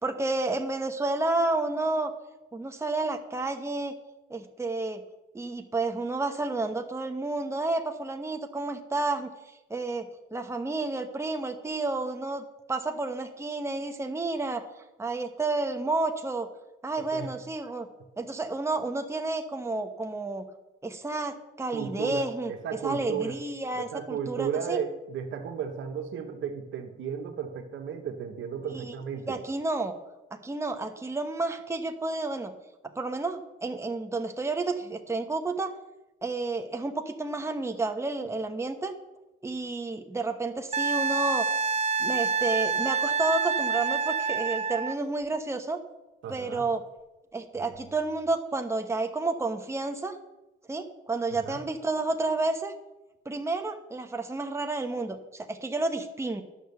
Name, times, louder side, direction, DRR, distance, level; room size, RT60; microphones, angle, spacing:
voice 1, 0.0-2.1 2.5-3.9 4.3-5.0 5.3-9.3 9.7-14.6 15.0-16.5 16.8-17.9 18.2-20.4 20.8-22.5 22.8-24.8 28.7-28.9 29.3-29.9 30.3-32.5 32.9-35.7 36.2-38.9 39.4-41.5 42.0-45.8 46.3-46.8 47.3-50.2 50.7-52.7 53.2-56.4, right 2 dB, 15° right, 5 dB, 1.0 m, -30 dB
voice 2, 17.0-17.3 21.7-23.4 23.7-29.4 46.2-46.7 51.4-51.6, right 7 dB, 75° right, 5 dB, 1.3 m, -34 dB
Wind instrument woodwind instrument, 40.7-45.0 47.7-47.8, right 5 dB, 35° right, 0.5 m, -27 dB
10.0 x 6.3 x 6.8 m, 1.0 s
cardioid pair, 90°, 20 cm